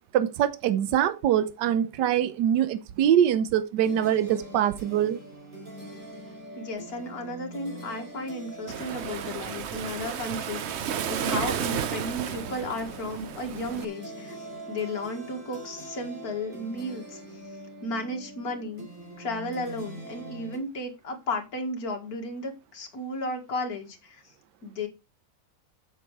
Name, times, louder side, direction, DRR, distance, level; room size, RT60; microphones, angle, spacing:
voice 1, 0.1-5.2, right 10 dB, 80° right, 1.4 m, -24 dB
sound 1, 3.8-20.6, right 2 dB, 30° right, 4.0 m, -43 dB
voice 2, 6.6-17.2 17.8-18.9 19.2-24.3 24.6-24.9, left 1 dB, 60° left, 2.5 m, -34 dB
Waves surf, 8.7-13.9, right 8 dB, 60° right, 0.7 m, -32 dB
7.5 x 7.5 x 4.7 m
omnidirectional pair, 1.9 m